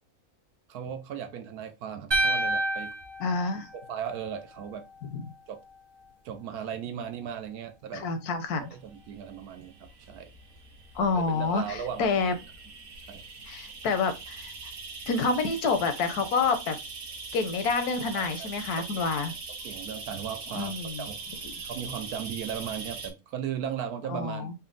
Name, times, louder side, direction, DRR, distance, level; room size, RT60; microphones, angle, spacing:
voice 1, 0.7-2.9 3.7-4.8 5.5-5.6 6.2-8.1 8.6-10.3 11.0-12.4 13.1-13.2 18.1-18.5 18.9-19.1 19.6-21.2 21.6-24.5, right 8 dB, 85° right, 1.2 m, -37 dB
sound 1, 2.1-4.4, right 2 dB, 30° right, 0.5 m, -29 dB
voice 2, 3.2-3.7 5.1-5.2 7.9-8.7 10.9-12.3 13.5-14.5 15.1-16.8 17.3-19.3 20.5-21.1 21.4-21.5 24.1-24.5, left 4 dB, 80° left, 1.2 m, -28 dB
sound 2, 8.7-23.1, right 4 dB, 65° right, 1.3 m, -42 dB
4.2 x 2.2 x 3.7 m
omnidirectional pair, 1.6 m